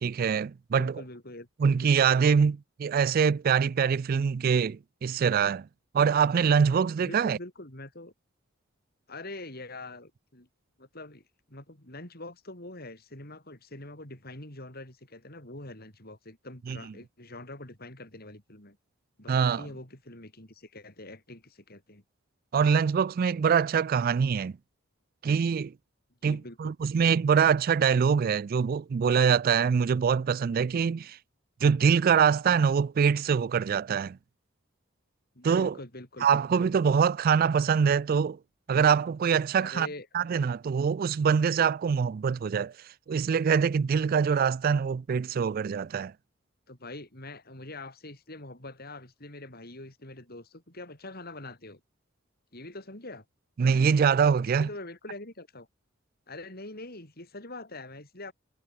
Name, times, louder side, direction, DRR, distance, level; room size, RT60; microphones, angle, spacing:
voice 1, 0.0-1.0 1.6-5.7 5.9-7.4 16.7-16.8 19.3-19.7 22.5-24.5 25.2-25.7 26.2-31.2 31.6-34.2 35.4-35.7 36.2-38.4 38.7-39.9 40.1-42.7 43.1-46.1 53.6-54.7, right 6 dB, 45° right, 0.3 m, -24 dB
voice 2, 0.8-1.5 1.8-2.1 7.0-8.1 9.1-10.5 10.8-18.8 19.2-22.0 26.2-26.7 35.4-36.6 39.5-40.3 46.7-51.8 52.5-53.3 53.9-55.7 56.3-58.3, left 2 dB, 50° left, 7.3 m, -44 dB
head